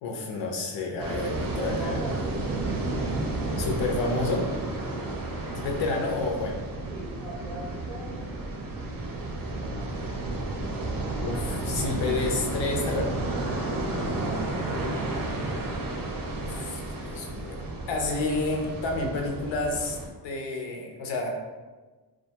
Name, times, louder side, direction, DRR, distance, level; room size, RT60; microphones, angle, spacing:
voice 1, 0.0-2.3 3.6-4.5 5.5-6.6 11.2-13.2 16.4-20.0 20.2-21.3, left 3 dB, 90° left, 1 dB, 0.6 m, -30 dB
sound 1, 1.0-20.1, right 2 dB, 50° right, 0.5 m, -32 dB
voice 2, 1.3-2.4 4.9-5.1 6.9-8.5 14.0-14.6, right 1 dB, 5° left, -3 dB, 0.4 m, -40 dB
2.4 x 2.2 x 2.8 m, 1.3 s
wide cardioid pair, 135°, 43 cm